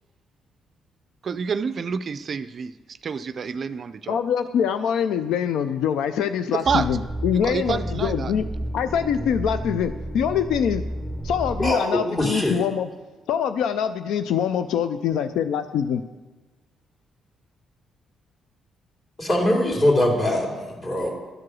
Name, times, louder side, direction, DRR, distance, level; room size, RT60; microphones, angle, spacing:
voice 1, 1.2-4.2 6.7-6.9 7.3-8.3, right 6 dB, 50° right, 12 dB, 0.4 m, -28 dB
voice 2, 4.1-8.4 8.7-10.8 11.2-12.9 13.3-16.0, left 8 dB, 85° left, 10 dB, 0.3 m, -24 dB
sound 1, 6.7-11.7, right 1 dB, 10° right, 0.7 m, -31 dB
voice 3, 11.6-12.7 19.2-21.1, left 1 dB, 35° left, -1 dB, 2.8 m, -22 dB
12.0 x 4.8 x 6.1 m, 1.2 s
cardioid pair, 90°, 0 cm